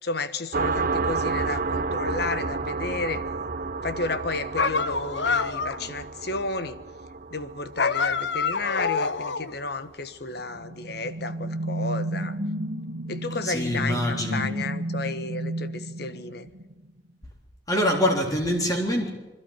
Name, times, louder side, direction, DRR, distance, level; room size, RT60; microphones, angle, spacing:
voice 1, 0.0-3.2 3.8-6.8 7.3-12.4 13.1-16.5, left 3 dB, 65° left, 1.4 m, -32 dB
sound 1, 0.5-9.8, right 4 dB, 55° right, 0.9 m, -31 dB
sound 2, 4.6-5.9 7.8-9.6, left 5 dB, 85° left, 1.0 m, -26 dB
sound 3, 10.4-16.9, right 1 dB, 75° right, 1.6 m, -32 dB
voice 2, 13.4-14.4 17.7-19.1, equal, 20° left, 3.6 m, -24 dB
26.0 x 12.5 x 10.0 m
head